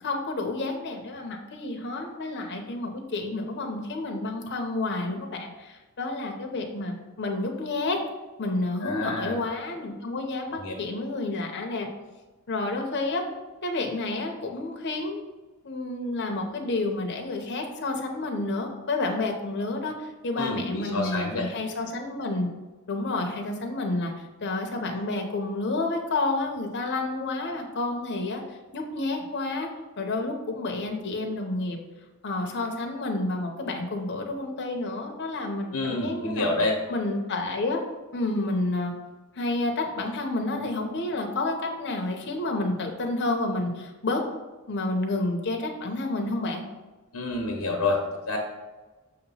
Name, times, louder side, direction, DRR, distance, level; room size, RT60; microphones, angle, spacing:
voice 1, 0.0-8.0 8.4-11.9 12.5-13.2 13.6-15.2 15.6-22.5 22.9-29.7 30.0-31.8 32.2-36.5 36.9-37.8 38.1-38.9 39.3-44.2 44.7-46.6, left 2 dB, 55° left, 2 dB, 0.8 m, -30 dB
voice 2, 8.8-9.4 10.6-10.7 20.4-21.5 35.7-36.7 47.1-48.4, left 2 dB, 85° left, 0 dB, 0.9 m, -28 dB
6.4 x 2.9 x 5.5 m, 1.2 s
head